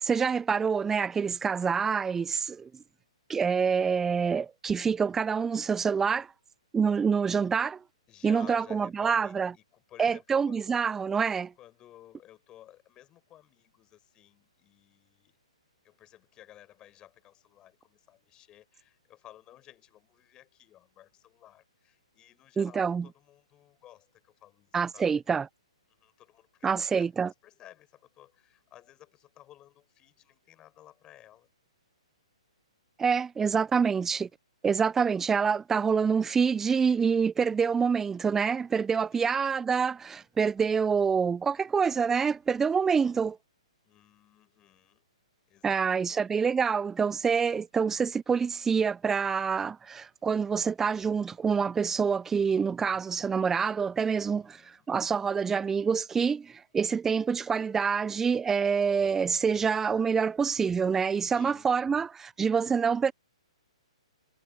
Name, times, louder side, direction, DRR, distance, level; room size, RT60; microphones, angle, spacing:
voice 1, 0.0-2.7 3.3-6.3 6.7-7.8 8.2-9.5 10.0-11.5 22.6-23.1 24.7-25.5 26.6-27.3 33.0-34.3 34.6-43.4 45.6-63.1, right 6 dB, 10° right, 0.3 m, -26 dB
voice 2, 8.1-10.8 11.6-15.4 15.8-25.1 25.9-27.1 27.4-31.5 34.1-34.3 39.1-39.4 43.8-45.0 45.5-46.4 54.1-54.9 61.3-61.9, left 13 dB, 25° left, 4.5 m, -55 dB
hypercardioid pair, 130°, 3 cm